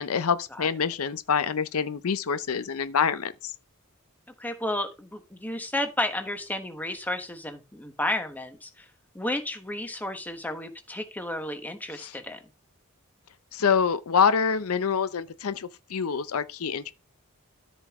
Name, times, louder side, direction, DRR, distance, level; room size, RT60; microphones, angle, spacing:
voice 1, 0.0-3.5 12.0-12.1 13.5-16.9, left 6 dB, 80° left, 0.6 m, -26 dB
voice 2, 4.4-8.9 9.1-12.4, left 1 dB, 10° left, 1.2 m, -32 dB
13.0 x 5.2 x 3.6 m
head